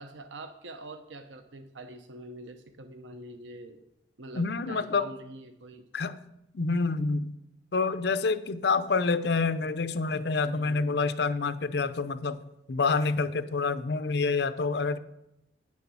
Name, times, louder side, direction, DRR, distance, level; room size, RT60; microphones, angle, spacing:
voice 1, 0.0-3.8 4.2-5.9 10.4-11.0, right 2 dB, 90° right, 8 dB, 0.8 m, -45 dB
voice 2, 4.3-5.1 5.9-6.2 6.5-7.3 7.7-12.4 12.7-15.0, left 4 dB, 65° left, 12 dB, 0.6 m, -27 dB
9.7 x 6.4 x 7.0 m, 0.84 s
head